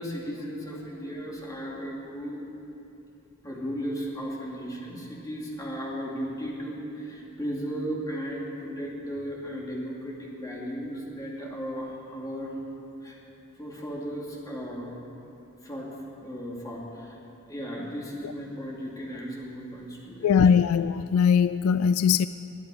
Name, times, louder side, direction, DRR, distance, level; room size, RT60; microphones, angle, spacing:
voice 1, 0.0-2.4 3.4-12.5 13.0-13.2 13.6-15.0 15.6-15.9 16.2-17.2 17.5-20.3, equal, 15° left, -4 dB, 2.4 m, -35 dB
voice 2, 20.2-22.3, left 7 dB, 75° left, 14 dB, 0.3 m, -21 dB
20.5 x 10.5 x 4.9 m, 2.9 s
head